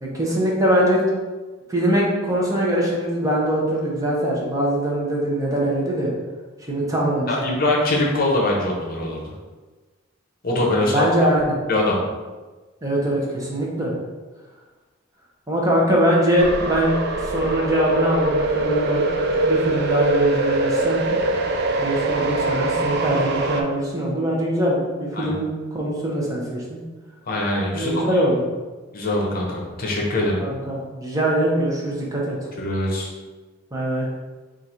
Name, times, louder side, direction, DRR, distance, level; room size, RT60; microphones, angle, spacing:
voice 1, 0.0-1.0 1.7-6.1 6.7-7.5 10.8-11.5 12.8-13.9 15.5-17.0 17.2-19.0 19.4-21.2 21.8-26.8 27.7-28.4 30.4-32.5 33.7-34.1, right 1 dB, 15° right, -4 dB, 0.8 m, -22 dB
voice 2, 7.3-9.2 10.4-11.1 11.7-12.0 25.2-25.3 27.3-28.0 28.9-30.4 32.6-33.1, left 1 dB, 45° left, -2 dB, 0.8 m, -22 dB
sound 1, 16.4-23.6, right 2 dB, 55° right, 0.4 m, -23 dB
3.8 x 2.5 x 4.3 m, 1.3 s
head